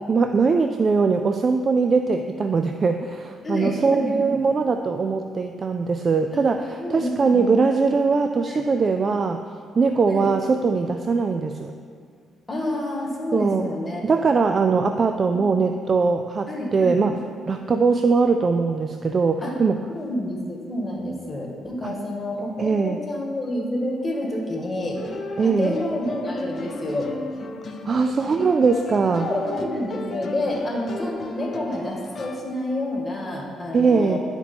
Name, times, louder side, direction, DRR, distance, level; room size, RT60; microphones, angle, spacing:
voice 1, 0.1-9.4 9.8-11.7 13.3-13.7 14.0-17.2 17.5-19.8 21.8-21.9 22.6-23.0 25.4-25.8 27.8-29.3 33.7-34.2, right 4 dB, 40° right, 6 dB, 0.3 m, -21 dB
voice 2, 3.4-4.4 6.3-6.5 6.8-7.7 8.5-8.6 10.0-10.3 12.5-14.1 15.3-15.5 16.5-17.0 19.4-19.6 19.9-25.0 25.4-27.1 29.2-34.2, left 1 dB, 25° left, -1 dB, 1.7 m, -28 dB
sound 1, 24.9-32.4, left 2 dB, 45° left, 0.6 m, -35 dB
11.0 x 4.4 x 4.3 m, 2.1 s
cardioid pair, 90°, 0 cm